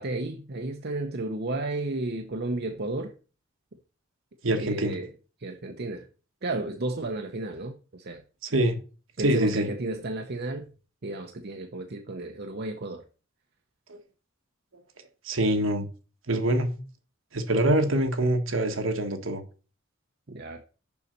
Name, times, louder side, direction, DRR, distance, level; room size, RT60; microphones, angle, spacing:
voice 1, 0.0-3.1 4.5-5.1 5.4-6.1 6.4-8.2 9.2-10.7 11.0-13.0 17.9-18.0 20.3-20.6, right 2 dB, 55° right, 0.8 m, -33 dB
voice 2, 4.4-4.9 8.4-8.8 9.2-9.7 13.9-14.0 15.2-15.9 16.3-16.7 17.3-19.4, right 1 dB, 70° right, 1.4 m, -24 dB
7.1 x 5.7 x 6.5 m
head